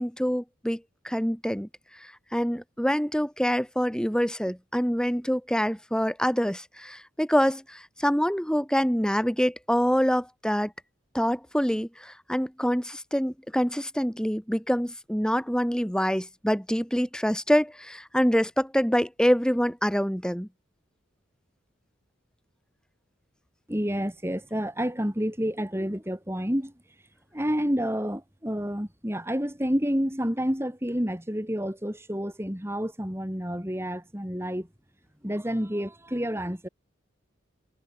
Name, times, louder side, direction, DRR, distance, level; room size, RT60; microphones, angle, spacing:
voice 1, 0.0-1.7 2.0-10.7 11.1-20.5, equal, 5° left, 3.2 m, -26 dB
voice 2, 23.7-26.7 27.3-34.7 35.2-36.7, equal, 10° right, 3.2 m, -29 dB
head